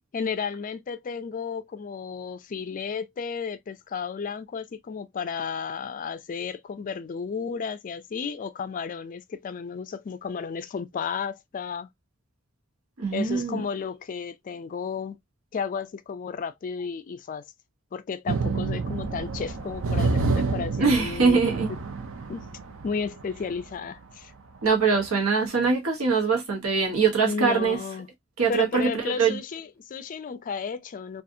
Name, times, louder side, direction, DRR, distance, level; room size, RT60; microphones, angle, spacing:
voice 1, 0.1-11.9 13.1-15.2 15.5-17.4 17.9-21.4 22.3-22.4 22.8-24.3 27.2-28.1 28.5-31.2, left 6 dB, 40° left, 0.3 m, -33 dB
voice 2, 13.0-13.6 20.8-21.7 24.6-27.8 28.4-29.4, right 5 dB, 90° right, 0.9 m, -23 dB
sound 1, 18.3-23.6 24.6-24.7 25.0-25.1, right 3 dB, 70° right, 0.5 m, -28 dB
2.6 x 2.4 x 2.4 m
head